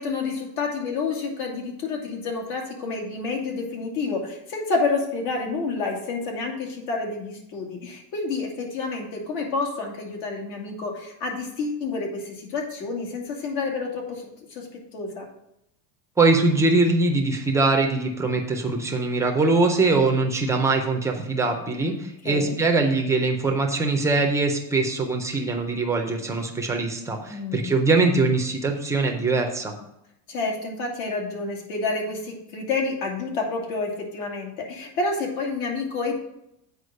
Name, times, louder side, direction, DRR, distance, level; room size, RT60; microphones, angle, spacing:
voice 1, 0.0-14.2 14.5-14.7 14.9-15.2 22.2-22.5 27.3-27.7 30.3-36.1, left 3 dB, 70° left, 1 dB, 2.5 m, -29 dB
voice 2, 16.2-29.7, right 3 dB, 5° right, 2 dB, 0.4 m, -22 dB
8.1 x 4.9 x 6.3 m, 0.82 s
cardioid pair, 170°, 50 cm